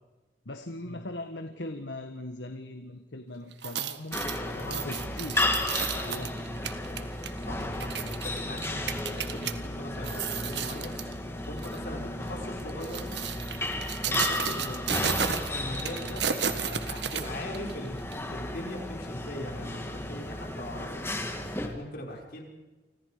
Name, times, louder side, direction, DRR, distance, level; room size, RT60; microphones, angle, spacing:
voice 1, 0.4-5.6 5.9-6.4, left 1 dB, 90° left, 7 dB, 1.6 m, -40 dB
sound 1, 3.5-9.5 10.0-11.1 11.6-11.8 12.6-17.7 18.1-18.2, right 8 dB, 80° right, 1.6 m, -33 dB
sound 2, 4.1-21.7, left 1 dB, 15° left, 2.4 m, -34 dB
voice 2, 7.5-11.0 11.5-13.2 14.0-21.0 21.6-22.4, left 1 dB, 60° left, 1 dB, 5.6 m, -40 dB
29.5 x 26.0 x 5.2 m, 1.2 s
head